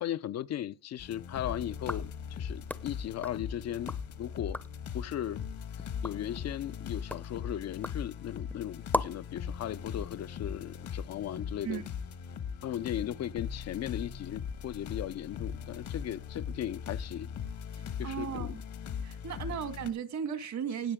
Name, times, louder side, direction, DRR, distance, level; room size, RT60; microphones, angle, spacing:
voice 1, 0.0-4.6 4.9-5.4 6.0-11.8 12.6-17.3 18.0-18.5, left 11 dB, 60° left, 0.5 m, -37 dB
sound 1, 1.0-19.9, left 7 dB, 75° left, 1.5 m, -40 dB
sound 2, 1.7-4.1 4.4-4.9 5.3-9.3, left 1 dB, 5° left, 0.6 m, -40 dB
voice 2, 17.8-18.6 19.0-20.9, right 7 dB, 65° right, 1.8 m, -36 dB
18.0 x 6.6 x 3.6 m
cardioid pair, 90°, 30 cm